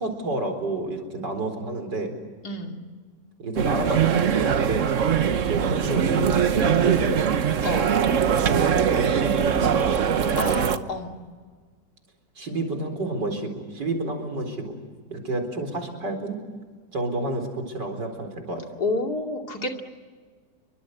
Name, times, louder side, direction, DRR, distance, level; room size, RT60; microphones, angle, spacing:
voice 1, 0.0-2.1 3.4-4.9 5.4-7.3 8.4-9.9 10.1-10.6 12.4-14.7 15.1-16.4 16.9-18.6, right 2 dB, 70° right, 5 dB, 4.9 m, -30 dB
voice 2, 2.4-2.8 7.6-7.9 10.4-11.1 18.8-19.8, left 2 dB, 60° left, 3 dB, 3.2 m, -29 dB
sound 1, 3.6-10.8, right 8 dB, 50° right, 1.2 m, -22 dB
28.5 x 23.5 x 7.9 m, 1.5 s
omnidirectional pair, 2.0 m